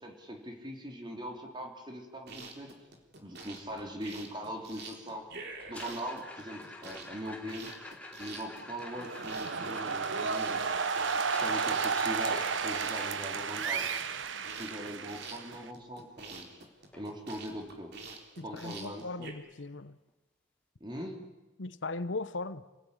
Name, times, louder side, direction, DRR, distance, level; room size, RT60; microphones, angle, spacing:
voice 1, 0.0-2.8 3.2-5.3 5.7-7.8 8.2-10.7 11.4-13.9 14.6-16.6 16.9-18.0 18.4-19.3 20.8-21.3, equal, 25° right, 3.7 m, -41 dB
sound 1, 2.2-19.3, right 3 dB, 55° right, 3.8 m, -47 dB
sound 2, 5.6-13.6 15.8-15.9 16.2-16.5 16.9-17.0 17.6-17.7 19.6-19.7, left 2 dB, 5° left, 3.6 m, -48 dB
sound 3, 8.8-15.7, right 5 dB, 70° right, 1.1 m, -32 dB
voice 2, 18.4-20.0 21.6-22.6, left 3 dB, 70° left, 1.0 m, -38 dB
28.0 x 19.0 x 9.9 m
head